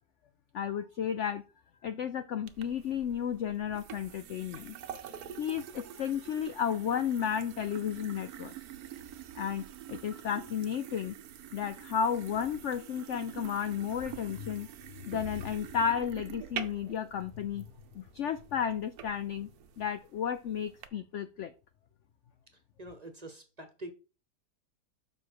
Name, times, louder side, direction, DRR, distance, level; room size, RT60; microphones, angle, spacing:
voice 1, 0.5-1.4 1.8-4.8 5.4-8.5 9.3-11.1 11.5-14.7 15.1-17.7 17.9-19.5 19.8-21.5, left 8 dB, 70° left, 10 dB, 0.7 m, -33 dB
sound 1, 2.5-20.9, right 9 dB, 70° right, 1.2 m, -46 dB
voice 2, 22.8-23.9, right 1 dB, 30° right, 6 dB, 1.0 m, -45 dB
7.0 x 5.3 x 4.7 m, 0.32 s
omnidirectional pair, 1.8 m